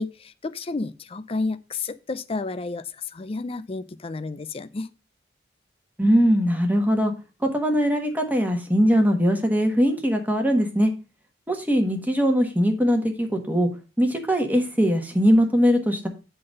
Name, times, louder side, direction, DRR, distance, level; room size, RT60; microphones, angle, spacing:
voice 1, 0.0-4.9, left 3 dB, 30° left, 0.5 m, -31 dB
voice 2, 6.0-7.1 7.4-10.9 11.5-13.7 14.0-16.1, equal, 10° right, 1.2 m, -21 dB
9.3 x 3.9 x 5.1 m
head